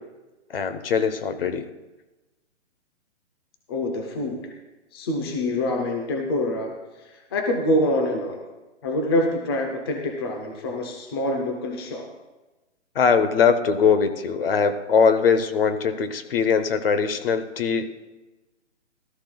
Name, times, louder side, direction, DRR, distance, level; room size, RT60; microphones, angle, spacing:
voice 1, 0.5-1.7 12.9-17.9, left 6 dB, 50° left, 10 dB, 1.0 m, -21 dB
voice 2, 3.7-4.5 4.9-8.4 8.8-12.2, left 1 dB, 20° left, 3 dB, 0.7 m, -26 dB
17.0 x 13.0 x 2.3 m, 1.1 s
hypercardioid pair, 160°, 37 cm